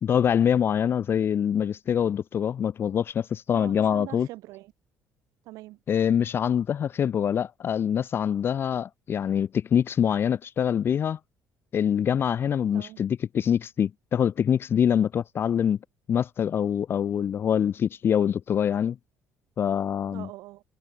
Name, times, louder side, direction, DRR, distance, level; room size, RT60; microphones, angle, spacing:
voice 1, 0.0-4.3 5.9-11.2 11.7-15.8 16.1-19.0 19.6-20.3, left 8 dB, 40° left, 0.5 m, -24 dB
voice 2, 3.5-4.7 5.4-5.8 12.7-13.1 20.1-20.6, right 18 dB, 85° right, 5.9 m, -43 dB
cardioid pair, 120°, 6 cm